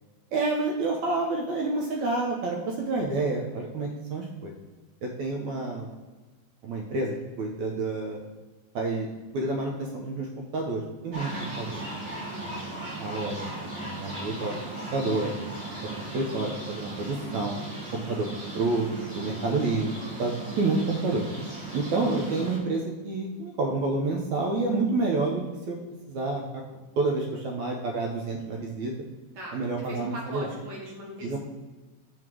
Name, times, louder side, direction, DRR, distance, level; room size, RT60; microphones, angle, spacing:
voice 1, 0.3-4.5 5.0-5.9 6.6-8.2 8.7-9.1 9.3-11.3 11.6-12.0 12.4-14.6 14.9-15.5 15.8-17.5 18.1-18.3 18.5-18.9 19.1-19.9 20.2-21.2 21.7-25.8 26.1-26.6 27.0-28.9 29.5-30.5 31.2-31.4, right 3 dB, 75° right, 0 dB, 1.8 m, -29 dB
sound 1, 11.1-22.6, right 2 dB, 40° right, 1.8 m, -37 dB
voice 2, 12.1-12.7 29.4-31.4, right 1 dB, 55° right, -2 dB, 2.5 m, -40 dB
5.5 x 4.9 x 6.1 m, 1.2 s
omnidirectional pair, 4.0 m